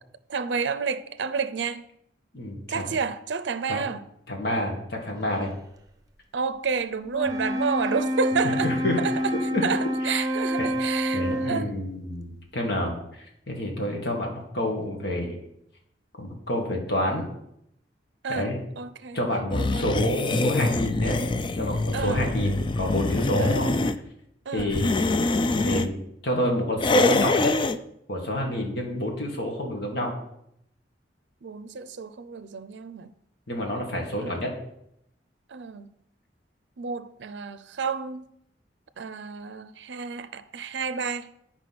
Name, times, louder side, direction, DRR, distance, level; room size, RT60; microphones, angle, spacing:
voice 1, 0.3-1.8 2.7-4.0 6.3-9.4 9.6-11.7 18.2-18.5 18.8-19.2 19.6-19.9 21.9-22.3 23.4-23.6 24.5-24.8 31.4-33.1 34.2-34.3 35.5-35.9 36.8-38.3 39.0-41.3, right 5 dB, 70° right, 0.5 m, -30 dB
voice 2, 2.3-2.8 3.7-3.8 4.3-5.5 8.4-9.0 9.5-9.6 10.1-10.2 10.6-10.7 11.1-13.0 13.5-15.4 16.2-17.3 18.3-18.6 19.1-21.2 21.5-23.8 24.5-25.2 25.6-26.0 26.2-27.5 28.1-30.1 33.5-34.5, left 1 dB, 60° left, 1.9 m, -28 dB
Wind instrument woodwind instrument, 7.1-11.9, equal, 20° right, 0.8 m, -28 dB
sound 1, 19.5-24.0 24.6-25.9 26.8-27.8, left 2 dB, 25° left, 0.4 m, -24 dB
9.3 x 4.8 x 5.9 m
head